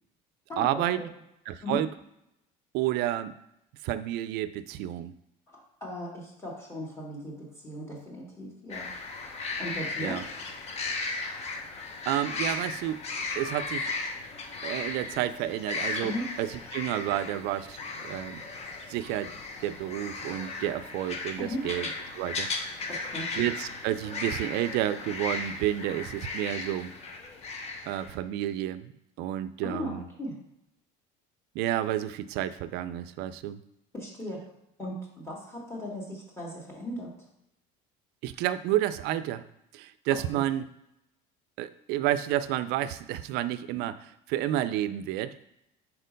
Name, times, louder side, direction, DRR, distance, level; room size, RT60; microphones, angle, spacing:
voice 1, 0.6-1.0 1.5-1.9 2.7-3.3 3.8-5.1 10.0-10.2 12.1-13.0 13.4-13.9 14.6-17.8 18.0-18.4 18.9-19.3 19.6-21.9 22.1-22.5 23.4-26.9 27.9-28.9 29.2-30.1 31.5-33.6 38.2-39.4 39.7-40.7 41.6-45.3, right 13 dB, 65° right, 13 dB, 0.4 m, -30 dB
voice 2, 5.8-8.9 9.6-10.2 16.0-16.2 21.4-21.6 22.9-23.3 29.6-30.3 33.9-34.4 34.8-37.1 40.3-40.5, left 1 dB, 15° left, -3 dB, 1.7 m, -37 dB
sound 1, 8.7-28.1, left 3 dB, 35° left, 0.9 m, -36 dB
4.4 x 4.2 x 5.2 m, 0.83 s
cardioid pair, 120°, 18 cm